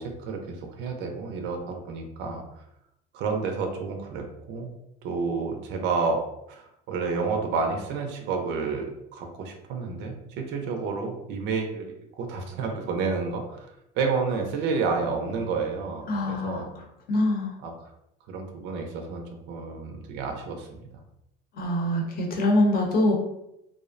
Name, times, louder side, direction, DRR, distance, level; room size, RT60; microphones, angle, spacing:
voice 1, 0.0-2.4 3.1-4.7 5.0-13.7 14.0-16.7 17.6-17.9 18.3-21.0, right 4 dB, 65° right, 3 dB, 0.5 m, -30 dB
voice 2, 16.1-16.7 17.1-17.6 21.5-23.1, left 1 dB, 45° left, 1 dB, 0.7 m, -24 dB
2.5 x 2.0 x 2.4 m, 0.81 s
supercardioid pair, 110°, 21 cm